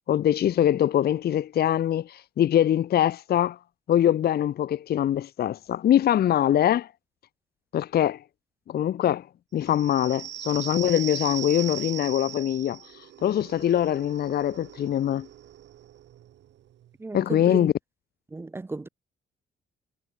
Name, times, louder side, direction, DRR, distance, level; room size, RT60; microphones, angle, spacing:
voice 1, 0.1-3.6 3.9-6.9 7.7-8.2 8.7-9.3 9.5-12.8 13.2-15.3 17.1-17.7, left 11 dB, 55° left, 0.6 m, -23 dB
sound 1, 9.6-16.9, right 12 dB, 65° right, 0.8 m, -39 dB
voice 2, 17.0-17.7 18.3-18.9, right 3 dB, 10° right, 0.3 m, -34 dB
cardioid pair, 90°, 20 cm